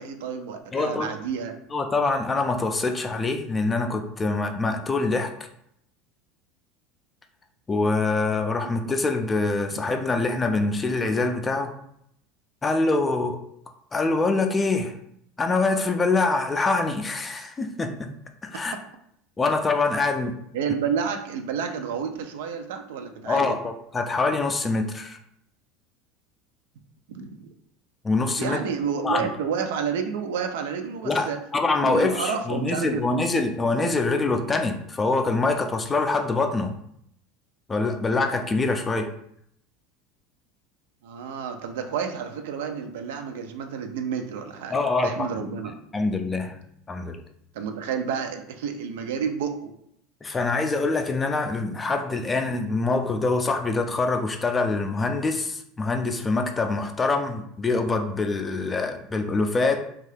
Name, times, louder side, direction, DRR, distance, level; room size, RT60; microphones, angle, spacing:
voice 1, 0.0-1.5 8.6-8.7 20.5-23.6 27.1-27.5 28.4-31.4 31.8-33.2 41.0-45.7 47.5-49.7 51.7-51.8, right 7 dB, 90° right, 6 dB, 0.4 m, -30 dB
voice 2, 0.7-1.1 1.7-5.3 7.7-11.7 12.6-13.4 13.9-14.9 15.4-18.1 18.4-18.7 19.4-20.3 23.3-25.2 28.0-28.6 28.9-29.3 31.0-36.7 37.7-39.1 44.7-45.5 45.9-46.6 46.9-47.2 50.2-59.8, left 3 dB, 15° left, 6 dB, 0.3 m, -25 dB
2.7 x 2.3 x 3.3 m, 0.73 s
supercardioid pair, 140°, 0 cm